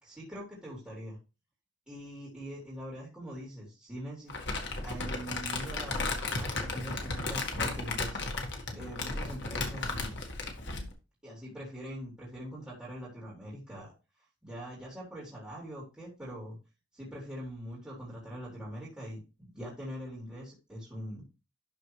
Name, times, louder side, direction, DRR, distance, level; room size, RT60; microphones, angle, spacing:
voice 1, 0.0-1.2 1.9-4.3 4.8-8.2 8.7-10.1 11.2-13.9 14.4-16.6 16.9-21.2, equal, 5° right, -7 dB, 3.5 m, -43 dB
Crumpling crinkling, 4.3-10.9, left 3 dB, 60° left, 1.7 m, -34 dB
12.0 x 4.5 x 3.2 m, 0.29 s
head